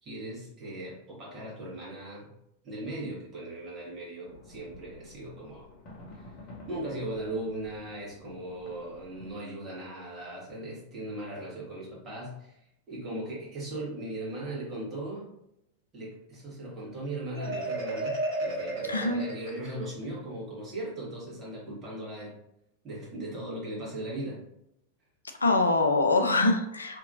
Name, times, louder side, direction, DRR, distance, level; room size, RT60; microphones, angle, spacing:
voice 1, 0.0-2.3 2.6-5.7 6.1-6.4 6.7-12.6 12.9-15.3 15.9-22.4 22.8-24.4, right 1 dB, 30° right, -5 dB, 1.4 m, -38 dB
sound 1, 4.2-9.3, left 2 dB, 40° left, 0.8 m, -50 dB
Marimba xylophone, 17.3-20.1, right 2 dB, 45° right, 1.3 m, -33 dB
voice 2, 18.9-19.2 25.4-27.0, left 2 dB, 75° left, 5 dB, 0.4 m, -24 dB
2.8 x 2.6 x 2.6 m, 0.80 s
figure-of-eight pair, 90°, 0 cm